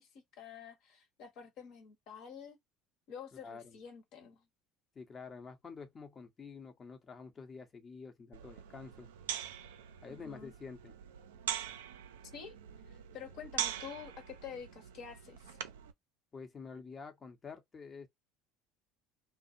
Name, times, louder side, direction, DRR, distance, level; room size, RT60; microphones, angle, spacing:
voice 1, 0.0-2.6 3.1-4.4 10.1-10.5 12.3-12.6 12.9-15.6, left 7 dB, 60° left, 1.0 m, -49 dB
voice 2, 3.4-3.8 4.9-9.1 10.0-10.9 16.3-18.1, left 5 dB, 30° left, 0.8 m, -48 dB
sound 1, 8.3-15.9, right 10 dB, 85° right, 0.4 m, -43 dB
2.4 x 2.0 x 2.6 m
hypercardioid pair, 75°, 0 cm